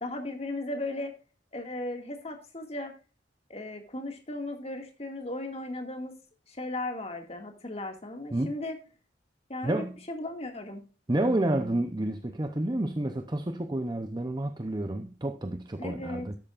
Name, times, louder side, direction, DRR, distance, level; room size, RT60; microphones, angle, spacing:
voice 1, 0.0-1.1 1.5-2.9 3.5-6.1 6.5-8.8 9.5-10.8 15.8-16.3, left 2 dB, 35° left, 2.2 m, -36 dB
voice 2, 11.1-16.4, right 1 dB, 25° right, 0.8 m, -29 dB
13.0 x 11.0 x 2.5 m
head